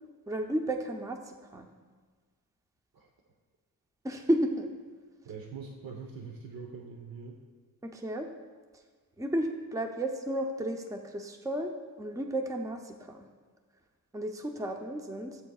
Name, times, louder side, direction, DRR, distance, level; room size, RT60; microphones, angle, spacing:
voice 1, 0.3-1.7 4.0-4.7 7.9-8.3 9.2-11.7 12.0-13.3 14.1-15.4, right 1 dB, 10° right, 4 dB, 0.7 m, -32 dB
voice 2, 5.2-7.4, right 5 dB, 65° right, 1 dB, 1.1 m, -43 dB
15.5 x 8.4 x 2.4 m, 1.5 s
cardioid pair, 100°, 37 cm